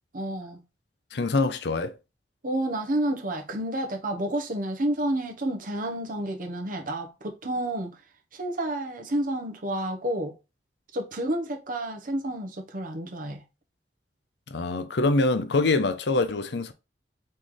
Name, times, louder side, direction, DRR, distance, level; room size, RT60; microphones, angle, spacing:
voice 1, 0.1-0.6 2.4-7.9 8.3-10.3 10.9-13.4, right 1 dB, 50° right, 1.0 m, -30 dB
voice 2, 1.1-1.9 14.5-16.7, left 3 dB, 65° left, 0.6 m, -24 dB
4.2 x 3.2 x 3.6 m
head